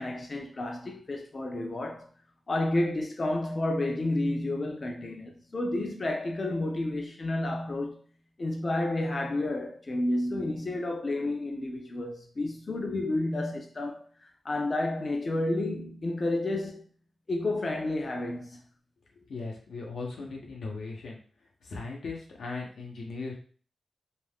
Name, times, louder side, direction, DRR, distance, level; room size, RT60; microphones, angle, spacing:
voice 1, 0.0-2.1 2.5-8.0 8.4-16.9 17.3-18.6, left 2 dB, 35° left, 0.4 m, -31 dB
voice 2, 19.3-21.2 21.6-23.3, left 3 dB, 90° left, 0.8 m, -38 dB
2.4 x 2.3 x 3.4 m
wide cardioid pair, 125°, 0 cm